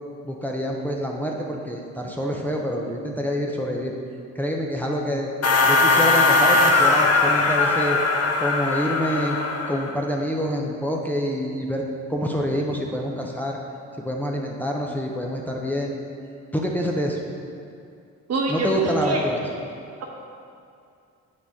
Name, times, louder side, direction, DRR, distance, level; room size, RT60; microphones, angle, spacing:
voice 1, 0.2-3.9 4.3-5.3 5.7-8.0 8.4-9.4 9.7-13.6 14.0-15.9 16.5-17.2 18.5-19.4, equal, 5° left, -1 dB, 0.7 m, -26 dB
sound 1, 5.4-9.9, left 3 dB, 55° left, 0.8 m, -19 dB
voice 2, 18.3-19.2, right 2 dB, 55° right, -1 dB, 1.3 m, -25 dB
8.1 x 6.4 x 3.6 m, 2.4 s
cardioid pair, 90°, 30 cm